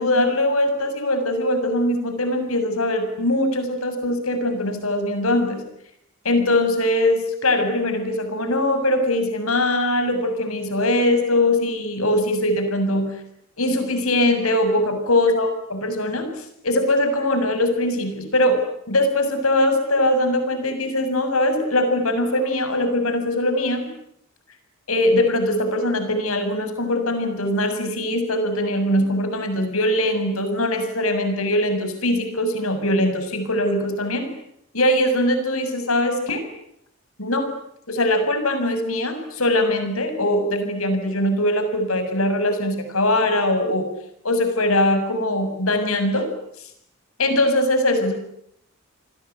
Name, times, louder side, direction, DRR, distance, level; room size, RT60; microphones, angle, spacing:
voice 1, 0.0-5.6 6.2-13.1 13.6-16.3 16.6-18.6 18.9-23.9 24.9-34.3 34.7-36.4 37.2-37.4 37.9-43.9 44.2-46.3 47.2-48.1, left 1 dB, 75° left, 7 dB, 7.1 m, -21 dB
29.5 x 20.5 x 9.4 m, 0.77 s
head